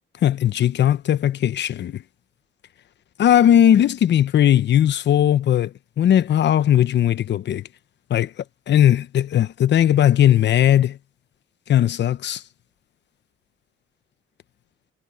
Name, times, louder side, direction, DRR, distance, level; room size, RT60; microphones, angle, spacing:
voice 1, 0.2-2.0 3.2-7.6 8.1-8.3 8.7-11.0 11.7-12.4, left 10 dB, 60° left, 1.0 m, -18 dB
cardioid pair, 90°, 20 cm